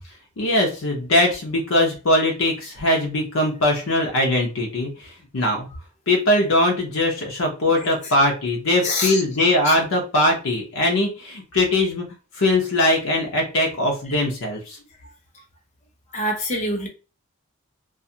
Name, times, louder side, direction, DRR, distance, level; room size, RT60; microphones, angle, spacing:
voice 1, 0.4-5.7 6.1-12.0 12.3-14.8, left 1 dB, 80° left, 1 dB, 0.7 m, -21 dB
voice 2, 8.8-9.2 9.6-9.7 16.1-16.9, left 1 dB, 35° left, 2 dB, 0.7 m, -24 dB
2.4 x 2.3 x 2.7 m, 0.33 s
head